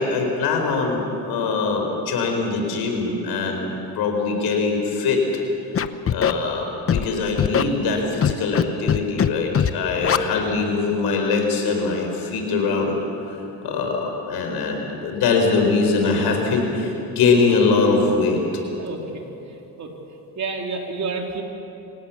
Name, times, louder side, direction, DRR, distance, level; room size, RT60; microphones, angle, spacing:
voice 1, 0.0-3.7 3.9-5.2 6.1-13.0 13.6-18.4, left 4 dB, 85° left, 2 dB, 4.7 m, -22 dB
Scratching (performance technique), 5.7-6.3 6.9-7.0 7.4-7.6 8.2-8.6 8.9-9.3 9.5-9.7 10.0-10.2, left 8 dB, 35° left, 0.8 m, -19 dB
voice 2, 18.8-19.9 20.4-21.4, right 4 dB, 45° right, 1 dB, 3.4 m, -31 dB
25.0 x 18.5 x 7.3 m, 2.9 s
cardioid pair, 110°, 38 cm